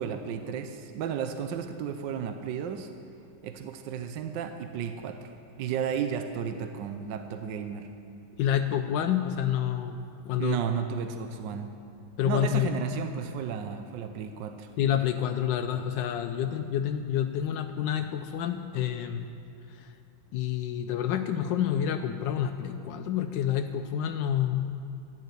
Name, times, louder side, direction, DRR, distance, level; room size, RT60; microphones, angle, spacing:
voice 1, 0.0-2.9 3.4-5.3 5.6-7.9 10.4-11.7 12.3-14.7, right 7 dB, 75° right, 7 dB, 1.4 m, -33 dB
voice 2, 8.4-10.0 10.2-10.6 12.2-12.7 14.8-19.2 19.8-19.9 20.3-24.7, left 10 dB, 85° left, 6 dB, 1.3 m, -28 dB
12.5 x 10.0 x 8.2 m, 2.5 s
omnidirectional pair, 2.0 m